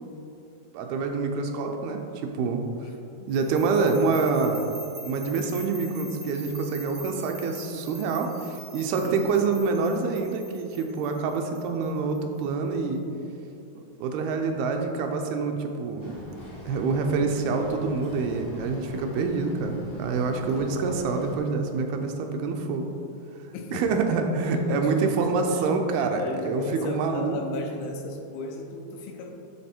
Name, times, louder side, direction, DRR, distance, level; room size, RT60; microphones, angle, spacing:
voice 1, 0.7-2.6 3.3-4.7 5.0-13.0 14.0-16.2 16.7-22.9 23.7-27.6, right 4 dB, 80° right, 3 dB, 2.5 m, -26 dB
voice 2, 2.8-3.3 9.0-9.3 15.6-15.7 20.5-21.1 23.5-29.3, left 3 dB, 80° left, 3 dB, 2.3 m, -36 dB
sound 1, 3.3-12.4, right 2 dB, 50° right, 0.7 m, -45 dB
Boat Water vehicle, 16.0-21.4, left 1 dB, 60° left, 1.0 m, -42 dB
11.5 x 4.0 x 4.4 m, 2.7 s
omnidirectional pair, 4.5 m